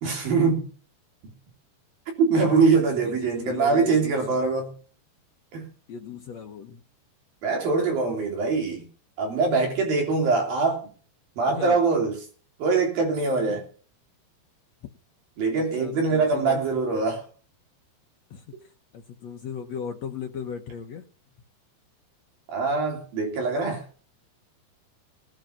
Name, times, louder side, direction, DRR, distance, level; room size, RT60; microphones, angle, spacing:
voice 1, 0.0-0.7 2.2-4.7 5.5-5.7 7.4-8.9 9.2-10.9 11.4-12.2 12.6-13.7 15.4-17.2 22.5-23.8, right 4 dB, 60° right, 2 dB, 4.7 m, -23 dB
voice 2, 3.0-4.4 5.9-6.8 11.5-11.8 15.5-16.6 18.3-18.4 18.9-21.0, left 6 dB, 80° left, 3 dB, 1.5 m, -36 dB
18.5 x 7.9 x 5.9 m, 0.40 s
omnidirectional pair, 4.9 m